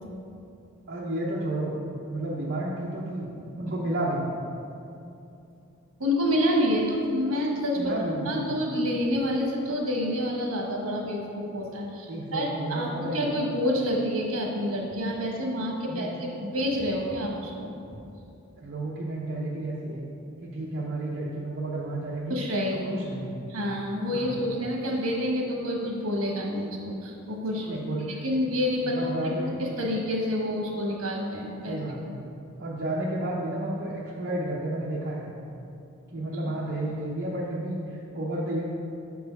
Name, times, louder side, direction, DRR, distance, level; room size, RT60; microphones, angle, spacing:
voice 1, 0.9-1.8 2.0-4.3 7.7-8.7 12.1-13.4 15.9-16.2 18.6-20.1 20.4-22.4 22.7-23.5 24.1-24.4 27.7-28.2 28.8-29.6 31.7-32.1 32.6-35.3 36.1-38.6, right 1 dB, 45° right, -6 dB, 0.7 m, -32 dB
voice 2, 6.0-17.7 22.3-23.0 23.5-27.8 28.2-29.1 29.4-31.8, equal, 65° right, -1 dB, 1.3 m, -28 dB
6.8 x 4.7 x 5.3 m, 2.7 s
head